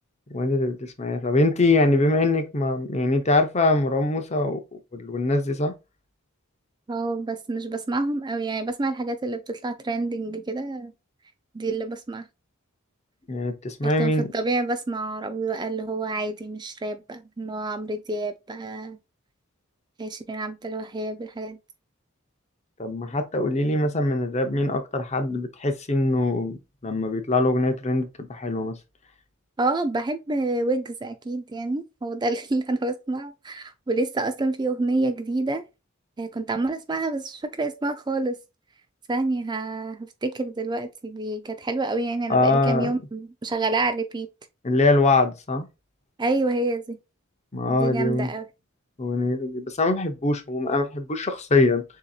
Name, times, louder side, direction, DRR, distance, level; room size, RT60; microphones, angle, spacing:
voice 1, 0.3-5.7 13.3-14.3 22.8-28.8 42.3-42.9 44.6-45.7 47.5-48.3 49.0-51.8, left 2 dB, 30° left, 0.7 m, -23 dB
voice 2, 6.9-10.9 11.5-12.3 13.8-19.0 20.0-21.6 29.6-35.6 36.2-38.4 39.1-44.3 46.2-47.0 47.7-48.4, right 2 dB, 20° right, 0.4 m, -28 dB
6.8 x 2.8 x 2.3 m
head